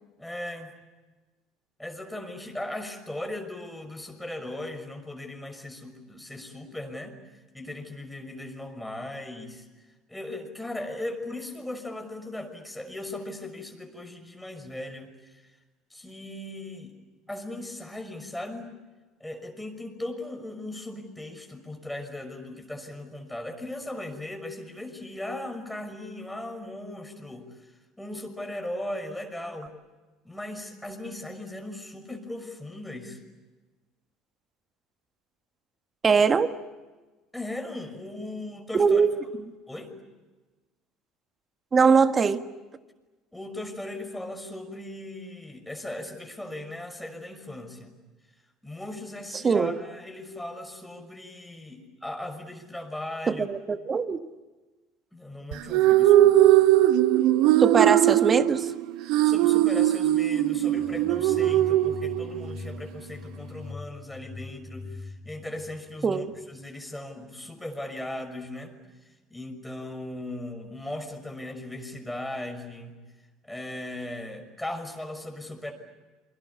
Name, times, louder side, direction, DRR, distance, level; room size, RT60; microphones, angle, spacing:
voice 1, 0.2-0.7 1.8-7.2 7.5-9.7 10.1-15.4 15.9-16.9 17.3-18.8 19.2-27.7 28.0-29.8 30.2-33.2 36.1-36.2 37.3-39.0 39.7-39.9 43.3-47.9 48.6-53.5 55.1-56.5 59.2-68.8 69.3-73.0 73.4-75.7, left 1 dB, 5° left, 4 dB, 6.0 m, -38 dB
voice 2, 36.0-36.5 38.7-39.1 41.7-42.4 49.4-49.8 53.3-54.2 57.6-58.7 66.0-66.3, right 5 dB, 30° right, 10 dB, 1.7 m, -21 dB
sound 1, 55.5-62.5, right 14 dB, 65° right, 1.0 m, -20 dB
sound 2, 60.4-66.4, left 4 dB, 20° left, 7.6 m, -42 dB
28.5 x 24.0 x 8.6 m, 1.2 s
hypercardioid pair, 65°, 0 cm